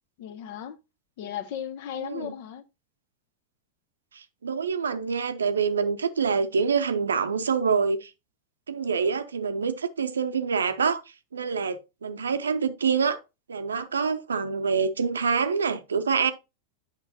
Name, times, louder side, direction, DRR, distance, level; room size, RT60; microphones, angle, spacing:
voice 1, 0.2-0.8 1.2-2.6, left 9 dB, 50° left, 0.8 m, -36 dB
voice 2, 2.0-2.3 4.1-8.1 8.7-11.0 11.3-13.2 13.5-16.3, right 5 dB, 70° right, 0.6 m, -26 dB
8.9 x 5.9 x 2.8 m
figure-of-eight pair, 90°, 0 cm